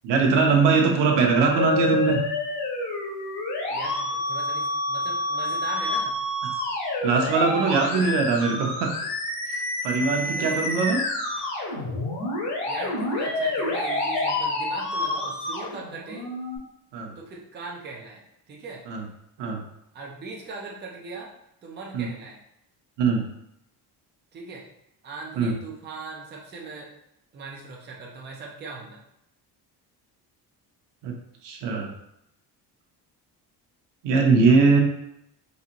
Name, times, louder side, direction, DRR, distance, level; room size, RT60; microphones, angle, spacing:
voice 1, 0.0-2.2 7.0-8.9 9.5-9.6 9.8-11.0 16.9-17.1 18.9-19.0 19.4-19.6 21.9-22.1 23.0-23.2 25.4-25.5 31.0-31.1 31.4-31.9 34.0-34.8, right 4 dB, 85° right, 2 dB, 0.8 m, -21 dB
Musical instrument, 0.6-16.6, left 2 dB, 90° left, 1.3 m, -29 dB
voice 2, 3.7-6.2 7.6-8.2 10.3-10.6 12.7-16.3 17.2-18.8 19.9-21.3 21.6-22.4 24.3-24.7 25.0-26.9 27.3-29.0, right 3 dB, 25° right, -2 dB, 0.5 m, -39 dB
4.0 x 2.6 x 2.9 m, 0.79 s
cardioid pair, 175°, 41 cm